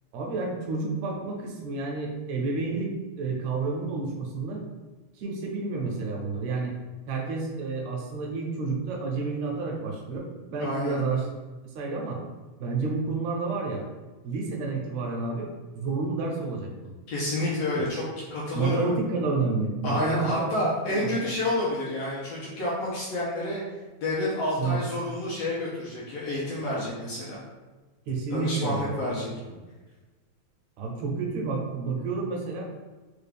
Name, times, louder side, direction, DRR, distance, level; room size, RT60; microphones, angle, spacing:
voice 1, 0.1-4.6 5.2-6.7 7.1-11.3 11.6-12.2 12.6-13.8 14.2-15.5 15.7-16.9 18.5-21.2 24.6-24.8 28.1-29.1 30.8-32.7, right 4 dB, 80° right, 0 dB, 1.8 m, -30 dB
voice 2, 10.6-11.0 17.1-18.0 18.3-18.9 19.8-23.6 24.0-27.4 28.3-29.3, left 1 dB, 70° left, -6 dB, 1.6 m, -29 dB
4.8 x 2.4 x 3.3 m, 1.2 s
omnidirectional pair, 3.5 m